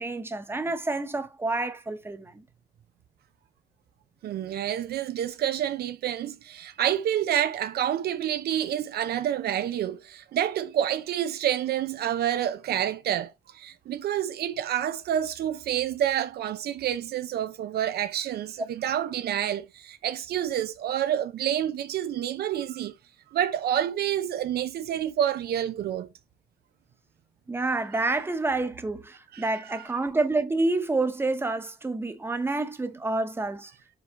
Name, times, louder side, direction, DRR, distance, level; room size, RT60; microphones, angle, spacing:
voice 1, 0.0-2.4 27.5-33.7, right 2 dB, 15° right, 1.0 m, -28 dB
voice 2, 4.2-22.9 23.3-26.1 29.3-29.9, right 10 dB, 80° right, 0.6 m, -28 dB
5.4 x 4.7 x 4.5 m
cardioid pair, 125°, 16 cm